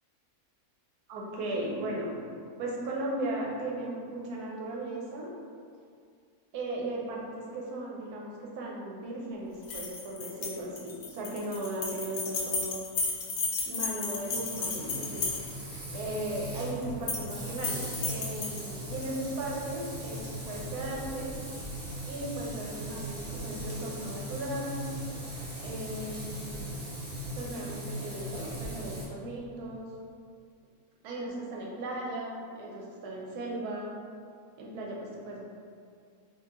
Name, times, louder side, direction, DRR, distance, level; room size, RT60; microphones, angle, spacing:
voice 1, 1.1-2.1 2.6-5.3 6.5-12.8 13.6-15.3 15.9-21.4 22.1-24.9 25.6-26.8 27.4-29.9 31.0-34.0 34.6-35.4, right 1 dB, 85° right, -3 dB, 1.2 m, -37 dB
sound 1, 9.6-15.8 16.8-17.3 17.6-19.1, left 4 dB, 65° left, 0.6 m, -34 dB
Frying (food), 14.1-29.0, right 1 dB, 40° right, 0.6 m, -39 dB
3.8 x 2.4 x 2.9 m, 2.2 s
omnidirectional pair, 1.6 m